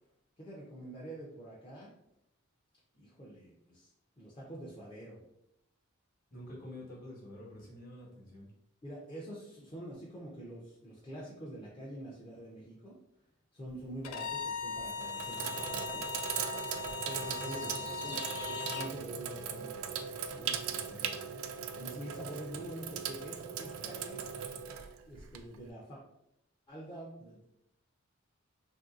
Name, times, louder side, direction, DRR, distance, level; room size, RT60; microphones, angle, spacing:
voice 1, 0.4-1.9 2.9-3.9 4.2-5.2 8.8-12.9 13.5-16.3 17.1-24.2 25.1-26.0 26.7-27.5, right 1 dB, 25° left, -5 dB, 0.5 m, -46 dB
voice 2, 6.3-8.5, left 1 dB, 45° left, -3 dB, 1.1 m, -48 dB
Sink (filling or washing), 13.7-14.1 14.8-25.7, right 7 dB, 75° right, 0.3 m, -39 dB
Bowed string instrument, 14.0-18.9, left 5 dB, 85° left, 0.3 m, -39 dB
sound 1, 15.2-15.7 17.1-19.0 20.0-20.1, left 2 dB, 70° left, 1.0 m, -50 dB
3.1 x 2.6 x 2.4 m, 0.81 s
head